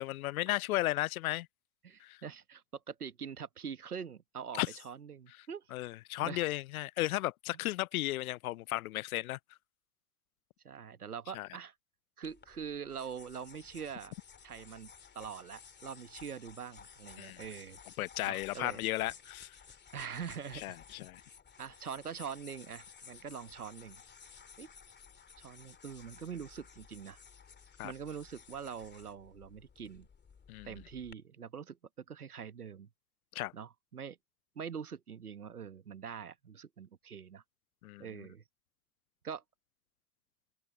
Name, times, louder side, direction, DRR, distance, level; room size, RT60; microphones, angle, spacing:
voice 1, 0.0-1.5 2.0-2.2 4.6-4.7 5.7-9.4 11.3-11.5 17.2-17.4 18.0-19.6 20.5-21.2 27.8-27.9 30.5-30.7 33.3-33.5 37.8-38.1, left 17 dB, 75° left, 0.5 m, -35 dB
voice 2, 1.8-5.6 6.2-6.4 10.6-11.7 12.2-14.1 14.4-17.8 18.2-18.8 19.9-20.8 21.6-24.0 24.6-24.7 25.4-27.2 27.8-30.1 30.6-32.9 33.5-34.2 34.5-37.4 38.0-38.4 39.2-39.4, right 7 dB, 90° right, 1.4 m, -44 dB
sound 1, 12.2-31.1, left 6 dB, 25° left, 2.8 m, -55 dB
figure-of-eight pair, 75°, 43 cm